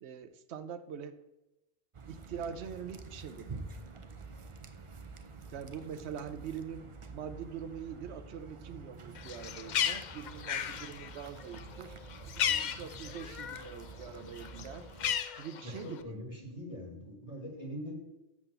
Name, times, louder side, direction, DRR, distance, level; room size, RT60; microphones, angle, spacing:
voice 1, 0.0-1.2 2.1-3.7 5.5-12.0 12.5-14.9 15.3-16.2, right 7 dB, 70° right, 12 dB, 0.9 m, -43 dB
sound 1, 1.9-15.2, right 4 dB, 40° right, 0.5 m, -48 dB
Bird, 9.2-13.8 14.1-16.0, left 9 dB, 60° left, 0.5 m, -35 dB
voice 2, 15.6-17.9, equal, 30° left, -2 dB, 2.0 m, -42 dB
7.4 x 5.9 x 6.6 m, 0.99 s
omnidirectional pair, 1.2 m